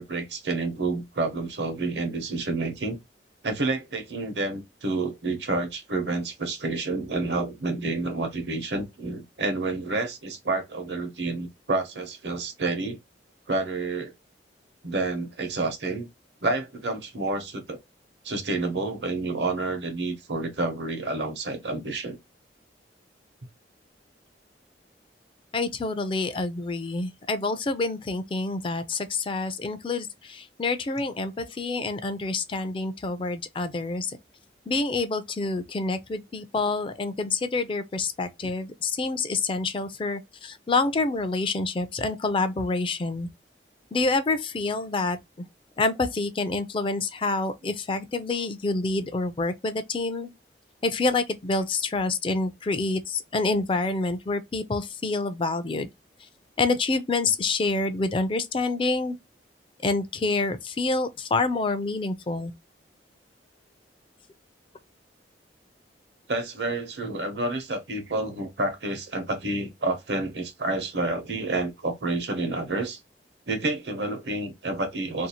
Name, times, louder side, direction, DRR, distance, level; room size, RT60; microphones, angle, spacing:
voice 1, 0.0-3.0 3.4-13.0 13.5-14.1 14.8-16.1 16.4-17.8 18.2-22.2 38.4-38.5 66.3-73.0 73.5-75.3, right 2 dB, 75° right, 0.9 m, -29 dB
voice 2, 25.5-34.2 34.7-43.3 43.9-45.2 45.8-50.3 50.8-55.9 56.6-59.2 59.8-62.5, left 3 dB, 30° left, 0.4 m, -27 dB
2.7 x 2.4 x 2.8 m
head